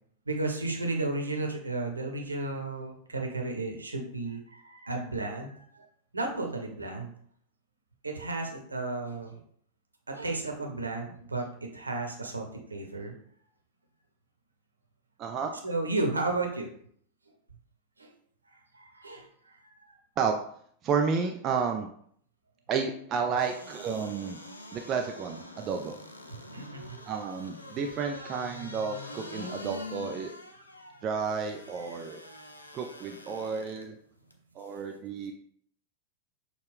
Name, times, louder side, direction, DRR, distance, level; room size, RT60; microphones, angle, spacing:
voice 1, 0.3-5.8 6.1-7.1 8.0-9.4 10.1-11.5 11.7-13.1 15.6-16.7 18.0-18.1 18.5-19.9 26.5-27.0 28.1-28.2 29.3-29.5 31.9-32.6, right 2 dB, 80° right, 2 dB, 0.9 m, -34 dB
voice 2, 15.2-15.5 20.2-20.3 20.8-21.9 22.7-24.4 24.7-26.0 27.0-30.3 31.0-32.2 32.7-34.0 34.6-35.3, right 6 dB, 30° right, 4 dB, 0.4 m, -31 dB
sound 1, 23.3-33.8 34.3-34.4, left 2 dB, 80° left, 0.5 m, -45 dB
6.4 x 2.3 x 3.6 m, 0.63 s
figure-of-eight pair, 90°, 0 cm